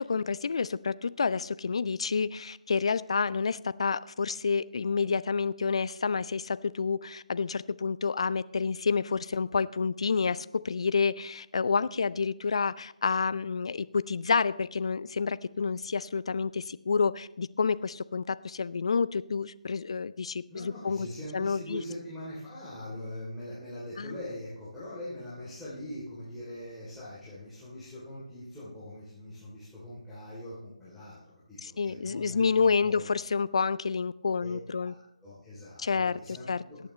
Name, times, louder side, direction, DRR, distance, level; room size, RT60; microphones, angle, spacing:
voice 1, 0.0-21.1 21.3-21.8 24.0-24.2 31.6-34.9 35.8-36.2 36.5-36.6, left 5 dB, 50° left, 17 dB, 0.5 m, -29 dB
voice 2, 20.5-33.0 34.4-36.8, left 1 dB, 5° left, -12 dB, 3.2 m, -42 dB
21.0 x 8.7 x 3.2 m, 0.89 s
figure-of-eight pair, 150°, 4 cm